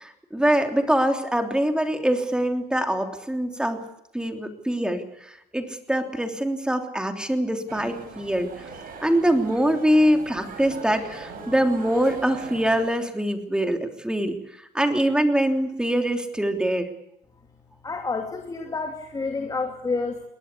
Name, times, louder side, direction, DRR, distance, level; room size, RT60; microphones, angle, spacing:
voice 1, 0.0-3.8 4.1-5.0 5.5-8.5 9.0-14.4 14.7-16.9, right 1 dB, 5° right, 5 dB, 3.2 m, -23 dB
sound 1, 7.7-12.9, right 4 dB, 60° right, 7.7 m, -41 dB
voice 2, 17.8-20.2, left 4 dB, 20° left, 4 dB, 2.7 m, -29 dB
21.0 x 18.5 x 8.3 m, 0.82 s
cardioid pair, 110°, 17 cm